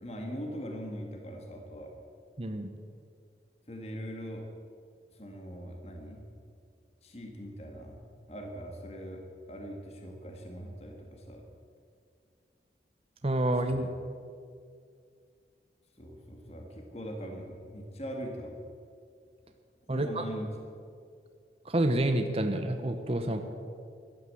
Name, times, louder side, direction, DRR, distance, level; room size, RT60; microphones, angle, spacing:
voice 1, 0.0-1.9 3.7-4.4 5.1-6.3 7.0-8.0 8.3-9.2 9.5-11.4 13.7-13.9 16.0-18.6 19.9-20.5, equal, 35° left, 2 dB, 1.9 m, -41 dB
voice 2, 2.4-2.7 13.2-13.9 19.9-20.2 21.6-23.4, right 1 dB, 35° right, 6 dB, 0.9 m, -28 dB
15.0 x 11.5 x 7.7 m, 2.3 s
head